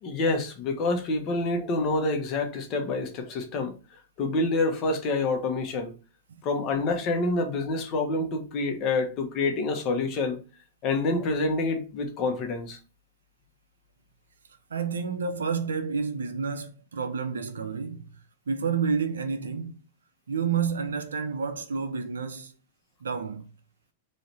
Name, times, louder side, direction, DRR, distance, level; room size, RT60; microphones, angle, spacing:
voice 1, 0.0-3.7 4.2-5.9 6.4-10.4 10.8-12.8, left 3 dB, 40° left, 1.1 m, -27 dB
voice 2, 14.7-18.1 18.5-19.8 20.3-22.5 23.0-23.4, right 6 dB, 90° right, 0.6 m, -29 dB
3.2 x 2.7 x 4.3 m
hypercardioid pair, 115°, 0 cm